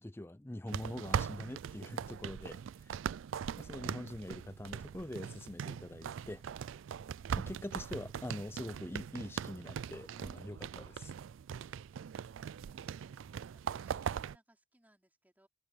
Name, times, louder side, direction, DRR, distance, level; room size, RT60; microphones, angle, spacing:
voice 1, 0.0-3.0 3.6-6.4 7.3-11.1, left 1 dB, 10° left, 0.5 m, -44 dB
sound 1, 0.7-14.4, right 7 dB, 80° right, 0.3 m, -40 dB
voice 2, 13.6-15.5, right 1 dB, 10° right, 3.4 m, -68 dB
head